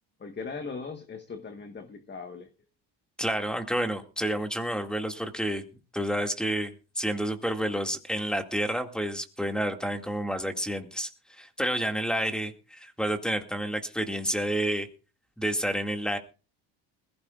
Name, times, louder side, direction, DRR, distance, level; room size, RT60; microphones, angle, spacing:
voice 1, 0.2-2.5, left 4 dB, 25° left, 7 dB, 1.4 m, -39 dB
voice 2, 3.2-5.6 5.9-11.1 11.4-14.9 15.4-16.2, equal, ahead, 5 dB, 2.1 m, -29 dB
21.0 x 15.5 x 2.4 m, 0.33 s
cardioid pair, 110°, 44 cm